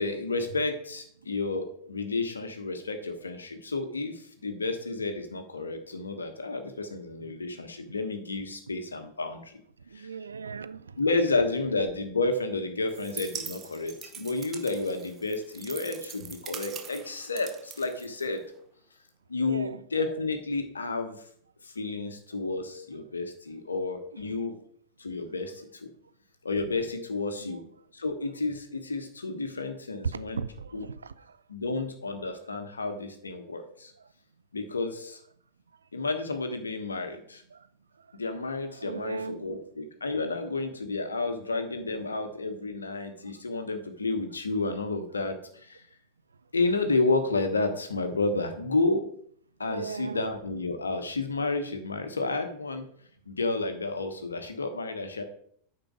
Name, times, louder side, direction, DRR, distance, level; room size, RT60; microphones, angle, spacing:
voice 1, 0.0-9.6 9.9-10.1 11.0-18.4 19.3-21.2 21.6-24.5 25.0-25.9 26.4-27.6 27.9-30.4 30.7-30.8 31.5-33.9 34.5-35.2 35.9-37.4 38.1-45.9 46.5-49.0 49.6-52.8 53.3-55.2, left 3 dB, 75° left, 1.3 m, -31 dB
voice 2, 9.9-11.0 19.4-19.8 27.4-27.7 30.1-31.4 32.3-32.4 34.0-34.1 37.5-37.7 38.2-38.3 38.6-39.6 40.2-40.3 43.5-43.7 49.7-50.3, right 5 dB, 70° right, 0.4 m, -39 dB
sound 1, 12.9-18.6, right 7 dB, 25° right, 0.9 m, -43 dB
9.0 x 5.9 x 4.8 m
figure-of-eight pair, 90°, 0 cm